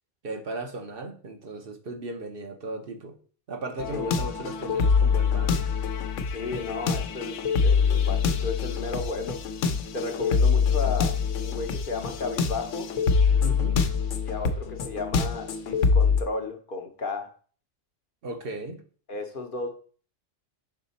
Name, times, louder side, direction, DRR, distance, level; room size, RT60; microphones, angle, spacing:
voice 1, 0.2-3.1 3.5-5.6 13.4-13.8 18.2-18.8, right 2 dB, 55° right, 0.9 m, -36 dB
sound 1, 3.8-16.2, left 5 dB, 90° left, 1.0 m, -25 dB
voice 2, 6.3-9.5 9.9-12.9 14.2-17.3 19.1-19.7, left 4 dB, 50° left, 0.9 m, -34 dB
5.7 x 4.1 x 4.0 m
omnidirectional pair, 1.2 m